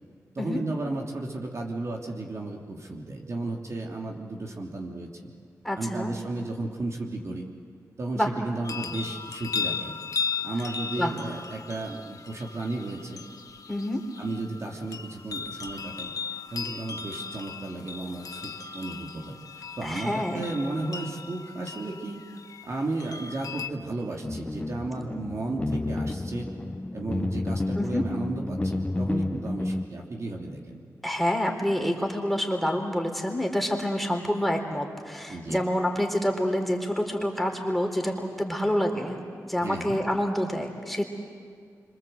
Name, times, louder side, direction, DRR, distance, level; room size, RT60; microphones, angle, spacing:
voice 1, 0.3-5.3 5.7-7.5 8.0-9.9 10.4-13.2 14.2-16.1 16.5-19.4 19.8-22.2 22.6-26.5 26.9-30.8 35.3-35.6 39.6-40.0, right 2 dB, 50° right, 0 dB, 3.0 m, -34 dB
voice 2, 5.6-6.1 8.1-8.3 11.0-11.1 13.7-14.0 19.8-20.4 27.7-28.0 31.0-39.2 39.4-41.1, equal, ahead, 2 dB, 3.7 m, -27 dB
sound 1, 8.6-23.7, left 5 dB, 70° left, 1.2 m, -37 dB
sound 2, 24.2-29.9, left 2 dB, 20° left, 0.8 m, -31 dB
26.5 x 25.0 x 7.9 m, 2.1 s
cardioid pair, 75°, 6 cm